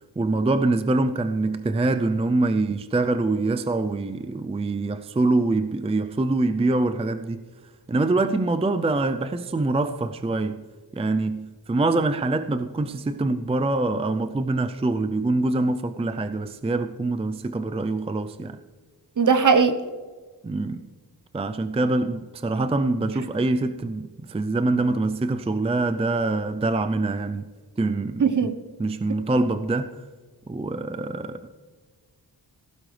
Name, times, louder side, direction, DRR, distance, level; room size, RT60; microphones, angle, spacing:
voice 1, 0.2-7.4 7.9-10.6 10.9-18.6 20.4-20.8 21.3-27.5 27.8-28.5 28.8-30.0 30.5-31.5, right 2 dB, 15° right, 0.4 m, -24 dB
voice 2, 19.2-19.8 28.2-28.5, right 5 dB, 50° right, 1.0 m, -18 dB
16.0 x 14.0 x 3.3 m
wide cardioid pair, 125°, 40 cm